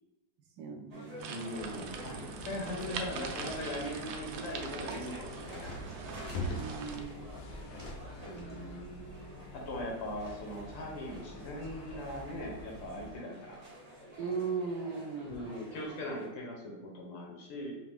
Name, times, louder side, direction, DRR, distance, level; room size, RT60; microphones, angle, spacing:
voice 1, 0.6-1.6 6.5-7.3 8.3-9.5 14.2-15.5, right 5 dB, 70° right, 3 dB, 1.1 m, -39 dB
sound 1, 0.9-16.3, equal, 30° right, 0.7 m, -49 dB
sound 2, 1.2-7.0, right 6 dB, 90° right, 1.3 m, -43 dB
voice 2, 1.3-5.8 9.5-13.7 15.2-17.7, left 1 dB, 85° left, -1 dB, 1.9 m, -40 dB
sound 3, 1.5-13.2, left 1 dB, 65° left, 0.9 m, -45 dB
4.9 x 2.9 x 3.5 m, 1.1 s
omnidirectional pair, 2.0 m